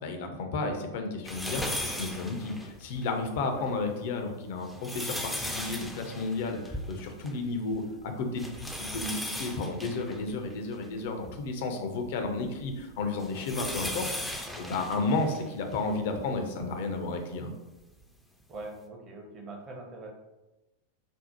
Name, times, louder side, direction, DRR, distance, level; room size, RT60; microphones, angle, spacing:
voice 1, 0.0-14.1 14.6-17.5, left 3 dB, 50° left, 4 dB, 0.5 m, -32 dB
sound 1, 1.3-3.1 3.6-3.7 4.5-7.5 7.7-7.8 8.4-11.4 12.0-15.9 16.6-16.7 18.0-18.1, left 1 dB, ahead, 0.4 m, -37 dB
voice 2, 18.5-20.1, right 2 dB, 30° right, 2 dB, 0.7 m, -42 dB
5.2 x 2.0 x 2.8 m, 1.0 s
figure-of-eight pair, 90°, 0 cm